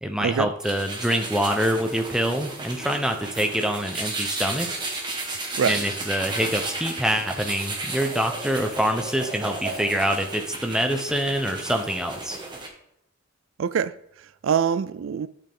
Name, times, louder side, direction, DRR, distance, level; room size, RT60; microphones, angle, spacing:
voice 1, 0.0-4.8 5.7-12.4, equal, 5° right, 0.9 m, -25 dB
sound 1, 0.6-12.7, right 2 dB, 20° right, 1.6 m, -33 dB
voice 2, 13.6-15.3, right 7 dB, 75° right, 0.4 m, -25 dB
10.5 x 8.8 x 3.7 m
head